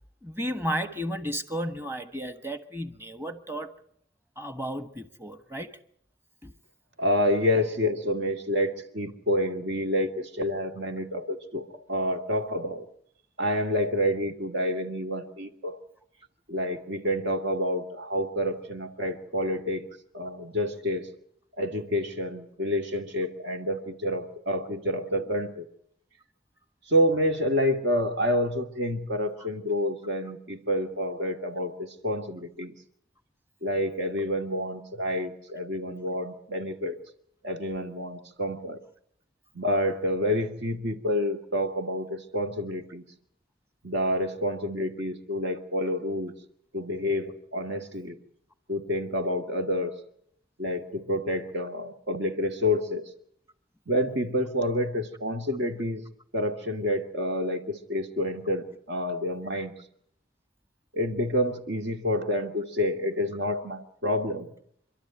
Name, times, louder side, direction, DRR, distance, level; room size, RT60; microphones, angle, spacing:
voice 1, 0.2-3.7 4.4-5.8 6.4-6.5, equal, 15° right, 10 dB, 1.4 m, -33 dB
voice 2, 7.0-12.9 13.4-15.8 16.5-19.9 20.1-21.1 21.6-25.7 26.9-32.7 33.6-37.0 37.4-38.8 39.5-43.0 43.8-46.3 46.7-48.2 48.7-49.9 50.6-53.1 53.9-56.0 56.3-59.7 60.9-64.5, left 1 dB, 70° right, 5 dB, 2.5 m, -28 dB
26.5 x 12.5 x 9.2 m, 0.70 s
head